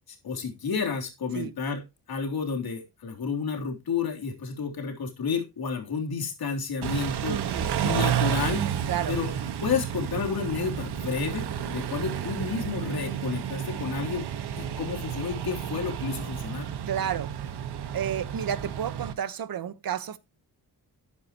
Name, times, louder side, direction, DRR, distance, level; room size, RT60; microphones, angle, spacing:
voice 1, 0.2-1.8 2.1-7.4 7.8-8.6 9.1-9.3 9.6-14.3 14.6-16.7, left 5 dB, 65° left, 3.6 m, -31 dB
Car / Idling / Accelerating revving vroom, 6.8-19.1, right 9 dB, 80° right, 1.6 m, -31 dB
voice 2, 7.3-7.7 8.9-9.2 16.9-17.3 17.9-20.2, right 9 dB, 60° right, 1.3 m, -31 dB
13.0 x 9.8 x 3.0 m
cardioid pair, 110°, 39 cm